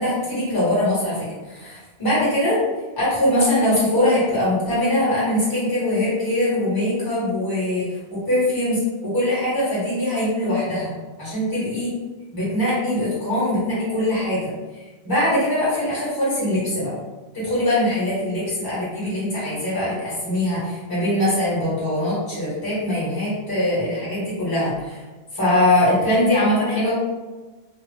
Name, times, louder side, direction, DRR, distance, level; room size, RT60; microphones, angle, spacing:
voice 1, 0.0-2.6 3.0-10.9 11.2-11.9 12.3-16.9 17.3-25.0 25.3-26.9, left 1 dB, 20° left, -10 dB, 1.4 m, -22 dB
2.8 x 2.0 x 3.3 m, 1.2 s
omnidirectional pair, 1.1 m